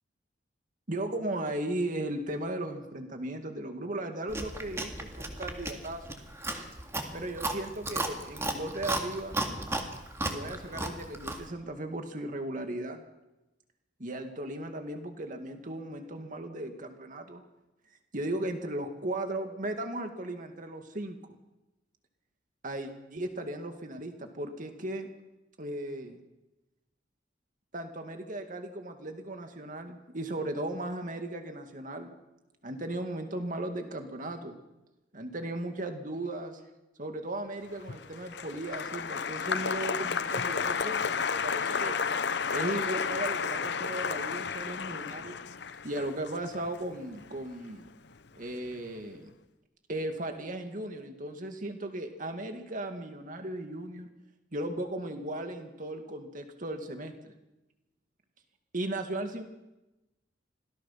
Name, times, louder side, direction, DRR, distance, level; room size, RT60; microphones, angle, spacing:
voice 1, 0.9-6.2 7.1-9.4 10.2-13.0 14.0-17.4 18.1-21.3 22.6-25.1 25.6-26.2 27.7-32.1 32.6-34.6 35.1-36.5 37.0-42.0 42.5-45.4 45.8-47.9 48.4-49.3 49.9-54.1 54.5-57.4 58.7-59.4, right 1 dB, 45° right, 5 dB, 2.2 m, -36 dB
Chewing mastication, 4.3-11.5, right 2 dB, 15° right, 2.1 m, -35 dB
Applause, 37.7-48.1 48.4-49.0, left 6 dB, 65° left, 0.8 m, -32 dB
26.0 x 17.5 x 6.0 m, 0.99 s
head